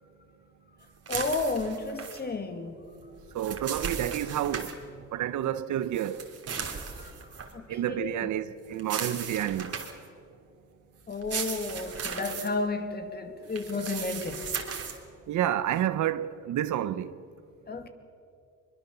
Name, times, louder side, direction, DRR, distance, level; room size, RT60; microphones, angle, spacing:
voice 1, 1.1-2.9 6.6-7.1 7.5-8.3 11.1-14.4 17.7-17.9, left 3 dB, 30° left, 2.4 m, -32 dB
sound 1, 1.1-2.2 3.2-4.7 5.9-7.5 8.8-10.1 11.1-12.5 13.5-15.0, right 6 dB, 55° right, 3.2 m, -36 dB
voice 2, 3.3-6.3 7.7-9.8 15.3-17.2, right 11 dB, 75° right, 0.9 m, -30 dB
23.0 x 22.5 x 7.0 m
cardioid pair, 90°, 30 cm